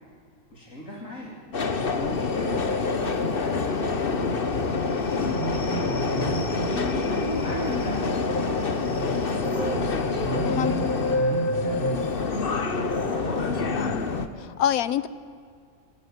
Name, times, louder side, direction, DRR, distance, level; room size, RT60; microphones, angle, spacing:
voice 1, 0.5-1.3 1.8-6.8 7.4-10.3 10.6-12.5 13.1-13.6, equal, 65° left, -3 dB, 3.9 m, -40 dB
Subway metro underground, 1.5-14.3, left 4 dB, 40° left, 1.3 m, -26 dB
sound 1, 5.2-12.1, right 5 dB, 75° right, 1.8 m, -34 dB
voice 2, 10.4-10.9 13.8-14.0 14.4-15.1, left 10 dB, 85° left, 16 dB, 1.3 m, -26 dB
26.5 x 15.5 x 9.5 m, 2.3 s
omnidirectional pair, 1.5 m